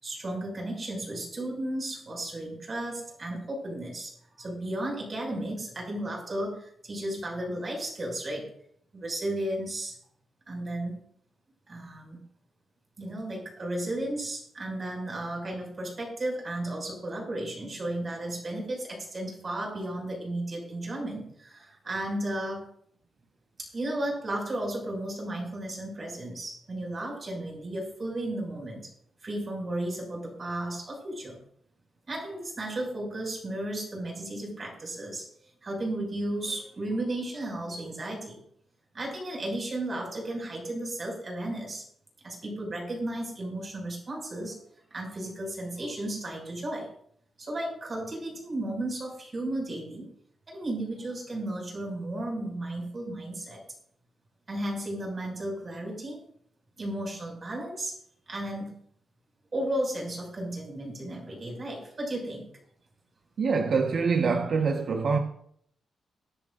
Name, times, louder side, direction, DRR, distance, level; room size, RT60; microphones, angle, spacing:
voice 1, 0.0-4.1 4.4-8.5 8.9-9.9 10.5-10.9 11.7-12.2 13.0-22.7 23.6-28.9 29.2-31.4 32.1-35.3 35.6-38.4 38.9-41.9 42.2-44.6 44.9-46.9 47.4-50.1 50.5-53.6 54.5-56.2 56.8-58.0 58.3-58.7 59.5-62.5, right 1 dB, 30° right, 6.1 m, -34 dB
voice 2, 63.4-65.2, right 5 dB, 55° right, 1.3 m, -25 dB
23.5 x 10.5 x 2.6 m
wide cardioid pair, 135°, 0 cm